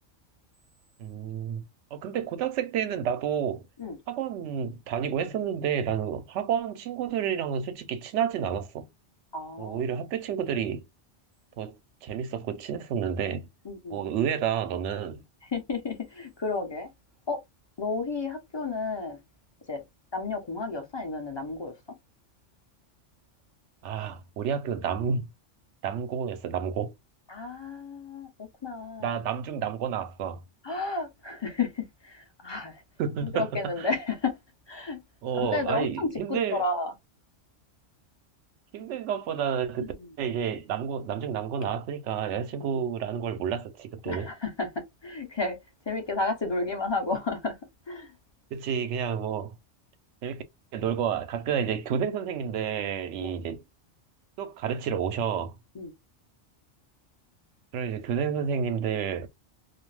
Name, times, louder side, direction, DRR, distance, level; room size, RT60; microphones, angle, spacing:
voice 1, 1.0-1.6 1.9-3.6 4.1-8.9 9.6-10.8 11.6-11.7 12.0-13.5 13.9-15.2 23.8-25.3 25.8-26.9 29.0-30.4 33.0-33.5 33.8-33.9 35.2-36.6 38.7-44.3 48.5-49.5 50.2-50.4 50.7-53.6 54.4-55.5 57.7-59.3, right 8 dB, 75° right, 0.9 m, -30 dB
voice 2, 9.3-9.8 13.6-14.0 15.5-16.9 17.3-17.4 17.8-19.2 19.7-19.8 20.1-21.7 27.3-29.2 30.6-32.8 33.2-34.4 34.7-35.0 35.4-36.9 39.8-40.1 42.6-42.8 44.1-45.6 45.9-47.6 47.9-48.1 53.2-53.3 55.7-55.9, left 3 dB, 30° left, 0.5 m, -32 dB
2.4 x 2.1 x 3.1 m
omnidirectional pair, 1.2 m